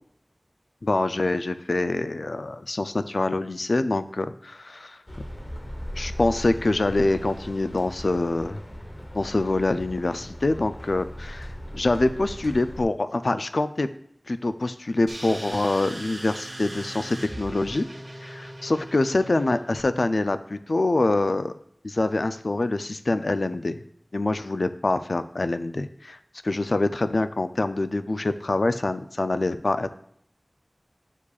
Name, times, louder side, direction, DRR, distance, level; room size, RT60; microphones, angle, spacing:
voice 1, 0.8-5.0 6.0-8.6 9.1-13.9 14.3-17.9 18.2-21.5 21.8-23.8 24.1-26.2 26.4-29.9, left 2 dB, 80° left, 11 dB, 0.3 m, -25 dB
sound 1, 5.1-12.8, equal, 35° left, 0.9 m, -38 dB
sound 2, 15.1-19.8, right 1 dB, 75° right, 1.7 m, -39 dB
9.7 x 4.8 x 2.3 m, 0.70 s
wide cardioid pair, 45°, 0 cm